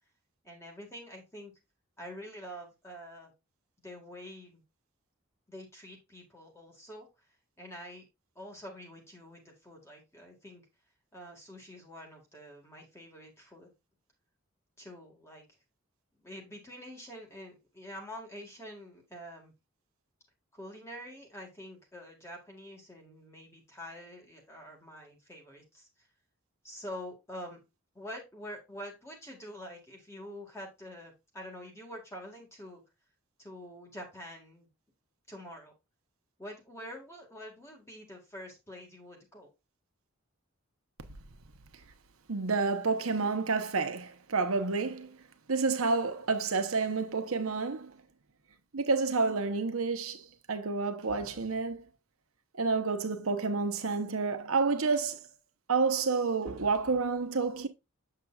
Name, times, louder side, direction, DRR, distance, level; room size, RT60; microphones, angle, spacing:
voice 1, 0.4-1.5 2.0-3.3 3.8-4.6 5.5-7.3 7.6-8.0 8.4-10.7 11.1-13.7 14.8-15.4 16.2-19.5 20.5-26.1 26.6-27.6 27.9-32.8 33.4-34.7 35.3-35.7 36.4-39.5, equal, 15° left, 1.8 m, -46 dB
voice 2, 42.3-45.1 45.5-48.0 48.7-51.9 52.6-55.3 55.7-57.7, right 4 dB, 85° right, 1.0 m, -29 dB
7.4 x 6.7 x 2.4 m
head